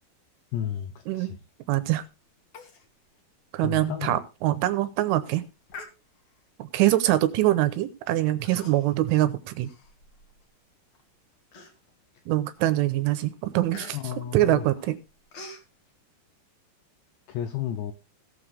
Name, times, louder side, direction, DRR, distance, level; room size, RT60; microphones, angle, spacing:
voice 1, 0.5-1.4 3.6-4.2 13.9-14.7 17.3-17.9, left 10 dB, 80° left, 9 dB, 2.5 m, -32 dB
voice 2, 1.7-2.0 3.5-5.4 6.6-9.7 12.3-14.0 14.3-15.0, right 15 dB, 80° right, 11 dB, 3.1 m, -24 dB
Human voice, 2.5-2.9 3.2-3.3 3.8-3.9 4.5-4.7 5.7-6.4 7.2-7.4 8.4-9.0 9.4-10.5 10.9-11.0 11.5-12.1 12.6-12.8 13.1-15.7, left 3 dB, 55° left, 1.9 m, -46 dB
17.5 x 7.1 x 3.4 m, 0.29 s
omnidirectional pair, 5.9 m